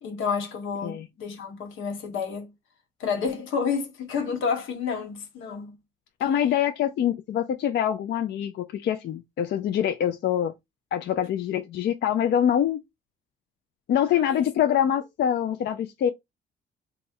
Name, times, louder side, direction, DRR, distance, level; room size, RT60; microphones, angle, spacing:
voice 1, 0.0-2.5 3.0-5.8 14.1-14.4, left 6 dB, 85° left, 1.3 m, -30 dB
voice 2, 6.2-10.5 10.9-12.8 13.9-16.1, left 10 dB, 60° left, 0.5 m, -25 dB
3.4 x 2.1 x 4.3 m
cardioid pair, 90°, 20 cm